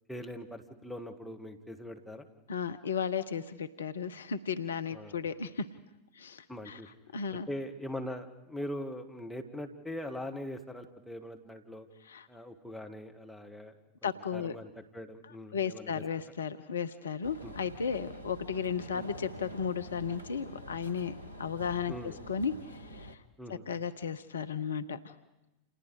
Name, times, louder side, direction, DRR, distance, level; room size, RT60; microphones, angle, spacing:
voice 1, 0.1-2.3 4.9-5.2 6.5-6.9 7.3-11.9 12.3-13.7 14.0-16.0 17.4-17.5 18.9-19.1 21.9-22.2 23.4-23.6, equal, ahead, 2 dB, 2.2 m, -42 dB
voice 2, 2.5-5.7 6.1-6.8 7.1-7.5 12.0-12.3 14.0-14.5 15.5-21.9 22.3-23.2 23.7-25.1, left 6 dB, 70° left, 12 dB, 0.9 m, -34 dB
sound 1, 17.2-23.2, equal, 85° left, 1.3 m, -47 dB
29.5 x 28.0 x 5.0 m, 0.95 s
figure-of-eight pair, 90°, 0 cm